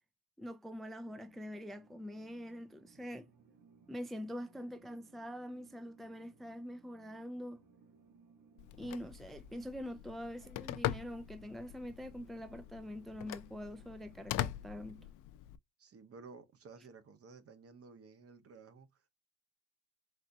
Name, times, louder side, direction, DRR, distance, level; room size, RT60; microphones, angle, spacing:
voice 1, 0.4-3.3 3.9-7.6 8.8-15.0, equal, ahead, 0.5 m, -44 dB
sound 1, 1.1-15.1, right 5 dB, 80° right, 1.6 m, -65 dB
voice 2, 2.9-3.6 15.8-19.1, right 4 dB, 50° right, 1.0 m, -55 dB
Telephone, 8.6-15.6, left 13 dB, 90° left, 0.5 m, -42 dB
4.2 x 3.9 x 2.7 m
cardioid pair, 90°, 30 cm